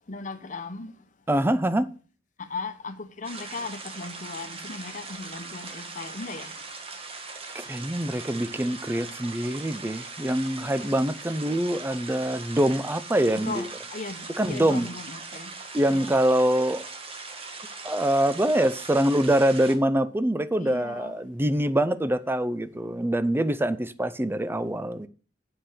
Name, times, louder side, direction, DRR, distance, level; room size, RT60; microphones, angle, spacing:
voice 1, 0.1-1.0 2.4-6.6 10.5-10.9 13.3-15.6 15.9-16.1 20.6-21.1, left 3 dB, 45° left, 1.0 m, -37 dB
voice 2, 1.3-1.9 7.5-13.6 14.4-14.9 15.7-16.8 17.8-25.1, right 1 dB, 15° right, 0.5 m, -24 dB
sound 1, 3.2-19.7, right 4 dB, 35° right, 1.3 m, -40 dB
7.8 x 5.9 x 6.6 m
head